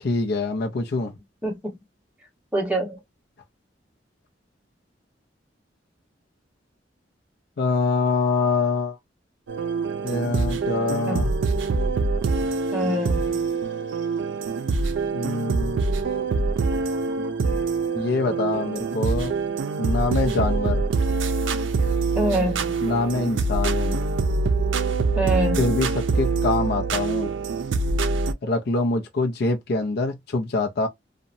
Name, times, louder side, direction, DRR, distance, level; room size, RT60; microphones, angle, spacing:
voice 1, 0.0-1.1 7.6-9.0 10.0-11.3 15.1-15.8 17.9-19.3 19.8-20.8 22.8-24.0 25.6-27.3 28.4-30.9, left 3 dB, 60° left, 0.5 m, -25 dB
voice 2, 1.4-1.7 2.5-3.0 11.1-11.3 12.7-13.3 22.1-22.7 25.1-25.6, right 1 dB, 5° right, 1.0 m, -25 dB
sound 1, 9.5-28.3, right 4 dB, 80° right, 0.4 m, -24 dB
2.8 x 2.1 x 2.6 m
head